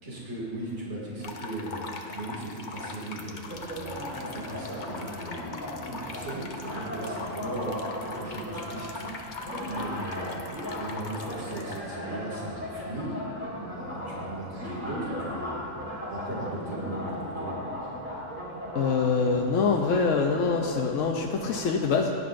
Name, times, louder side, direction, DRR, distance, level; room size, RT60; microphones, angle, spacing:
voice 1, 0.0-1.8 2.1-5.5 5.8-9.3 9.6-10.4 10.7-13.1 13.6-15.8 16.1-17.6, right 1 dB, 65° right, -6 dB, 2.6 m, -37 dB
sound 1, 1.2-11.8, left 3 dB, 45° left, 0.8 m, -41 dB
sound 2, 3.4-21.6, equal, 10° right, 2.8 m, -37 dB
voice 2, 18.7-22.1, left 5 dB, 75° left, 1 dB, 1.0 m, -25 dB
17.0 x 11.0 x 2.5 m, 2.7 s
omnidirectional pair, 1.3 m